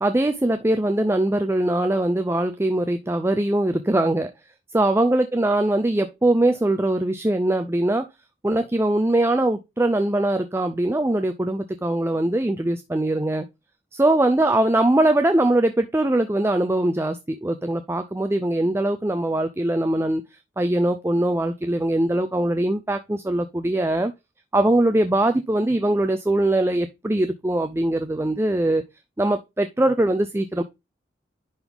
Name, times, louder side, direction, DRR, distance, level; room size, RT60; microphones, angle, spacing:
voice 1, 0.0-4.3 4.7-8.1 8.4-13.5 13.9-20.2 20.6-24.1 24.5-28.8 29.2-30.6, right 1 dB, 15° right, 0.4 m, -21 dB
10.5 x 4.0 x 3.5 m
head